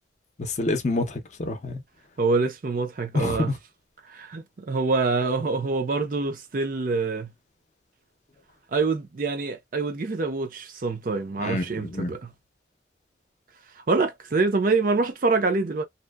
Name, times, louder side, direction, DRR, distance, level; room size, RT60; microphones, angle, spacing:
voice 1, 0.4-1.8 3.1-3.5 11.4-12.1, left 2 dB, 40° left, 0.5 m, -27 dB
voice 2, 2.2-3.5 4.1-7.3 8.7-12.3 13.9-15.8, right 3 dB, 45° right, 0.5 m, -25 dB
2.7 x 2.1 x 2.2 m
head